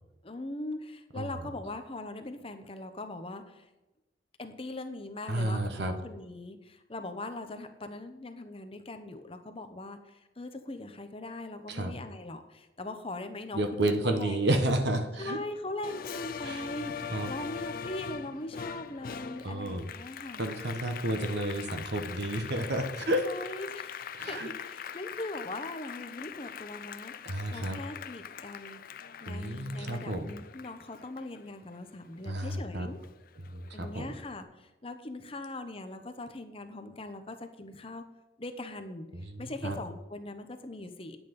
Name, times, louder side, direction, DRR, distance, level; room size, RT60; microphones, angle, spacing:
voice 1, 0.2-3.7 4.4-14.4 15.2-20.5 23.2-33.0 33.7-38.0 38.4-41.2, left 2 dB, 30° left, 8 dB, 0.9 m, -41 dB
voice 2, 5.3-5.9 11.7-11.9 13.5-15.4 16.4-16.6 17.1-17.3 19.4-19.9 20.4-23.3 24.2-24.5 27.2-27.8 29.3-30.3 32.2-32.9 33.5-34.1 39.1-39.8, right 1 dB, 65° right, 7 dB, 1.3 m, -31 dB
Applause, 15.8-32.6 33.0-34.2, left 7 dB, 50° left, 0.5 m, -42 dB
10.0 x 8.9 x 5.4 m, 1.0 s
head